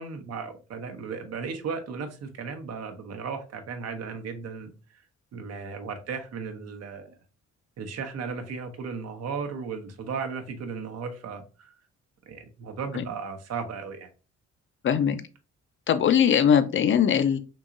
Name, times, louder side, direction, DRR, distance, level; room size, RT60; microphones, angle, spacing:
voice 1, 0.0-4.7 5.3-7.1 7.8-11.4 12.3-14.1, right 5 dB, 55° right, 6 dB, 0.8 m, -35 dB
voice 2, 14.8-15.2 15.9-17.4, left 8 dB, 40° left, 11 dB, 0.5 m, -21 dB
3.8 x 2.9 x 2.5 m, 0.33 s
cardioid pair, 90°, 30 cm